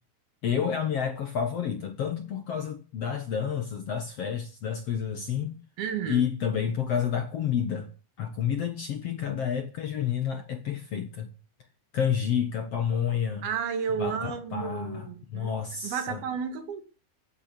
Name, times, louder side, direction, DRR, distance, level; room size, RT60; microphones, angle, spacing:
voice 1, 0.4-5.6 6.1-7.9 8.2-11.3 11.9-13.5 14.0-16.2, left 8 dB, 60° left, 1.8 m, -29 dB
voice 2, 5.8-6.2 13.4-15.5 15.8-16.8, right 7 dB, 75° right, 4.0 m, -32 dB
16.0 x 9.1 x 8.3 m
omnidirectional pair, 4.4 m